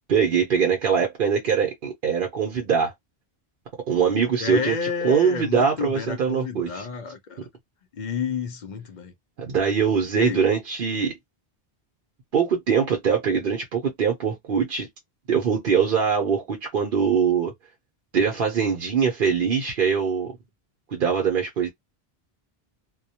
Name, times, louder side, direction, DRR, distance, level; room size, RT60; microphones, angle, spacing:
voice 1, 0.1-2.9 3.9-4.8 5.0-6.8 9.5-11.1 12.3-14.9 15.3-17.5 18.1-20.3 20.9-21.7, right 6 dB, 60° right, 0.8 m, -22 dB
voice 2, 4.4-7.4 7.9-9.1 10.1-10.4, left 5 dB, 55° left, 0.6 m, -30 dB
2.2 x 2.1 x 2.7 m
omnidirectional pair, 1.1 m